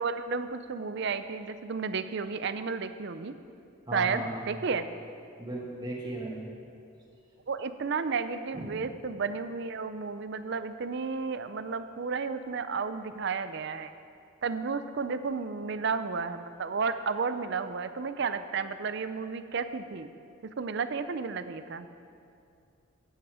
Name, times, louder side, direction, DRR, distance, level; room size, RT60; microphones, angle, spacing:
voice 1, 0.0-3.3 3.9-4.9 7.5-13.9 14.4-20.1 20.4-21.9, right 5 dB, 55° right, 11 dB, 0.5 m, -32 dB
voice 2, 3.9-4.4 5.4-6.5 8.5-8.7, right 1 dB, 20° right, -3 dB, 1.9 m, -36 dB
14.0 x 8.9 x 4.9 m, 2.5 s
head